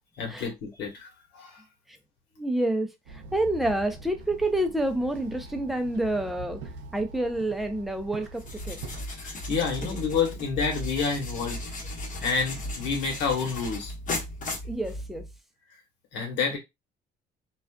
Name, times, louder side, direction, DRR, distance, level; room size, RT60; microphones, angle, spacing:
voice 1, 0.2-1.1 1.3-1.6 9.2-11.6 12.2-13.9 16.1-16.6, left 5 dB, 80° left, 1.2 m, -29 dB
voice 2, 2.4-6.6 6.9-8.8 9.8-10.0 14.6-15.3, right 1 dB, ahead, 0.5 m, -28 dB
Walk footsteps / Chatter / Hiss, 3.1-9.0, right 3 dB, 80° right, 0.5 m, -43 dB
sound 1, 8.4-15.4, left 1 dB, 45° left, 1.0 m, -36 dB
2.4 x 2.4 x 2.2 m
supercardioid pair, 85°, 19 cm